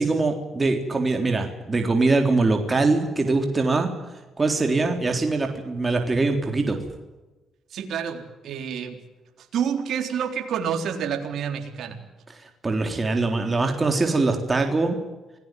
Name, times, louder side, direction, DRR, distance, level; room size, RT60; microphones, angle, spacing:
voice 1, 0.0-3.9 4.4-6.8 12.3-15.0, right 3 dB, 25° right, 4 dB, 3.8 m, -23 dB
voice 2, 7.7-9.0 9.4-12.0, right 8 dB, 70° right, 4 dB, 3.8 m, -28 dB
27.5 x 18.0 x 9.3 m, 1.1 s
cardioid pair, 90°, 0 cm